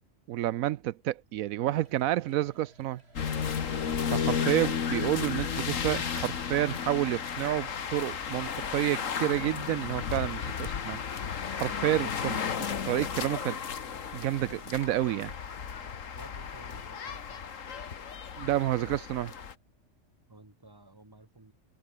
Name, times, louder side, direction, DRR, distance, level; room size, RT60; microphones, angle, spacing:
voice 1, 0.3-3.0 3.7-3.8 4.1-11.0 11.5-12.4 12.8-13.6 14.1-15.3 18.4-19.3, right 14 dB, 80° right, 1.0 m, -29 dB
sound 1, 1.6-20.4, right 2 dB, 45° right, 5.6 m, -60 dB
sound 2, 3.2-19.5, left 7 dB, 70° left, 1.7 m, -34 dB
voice 2, 16.1-17.6 20.3-21.5, right 2 dB, 15° right, 2.2 m, -53 dB
omnidirectional pair, 1.4 m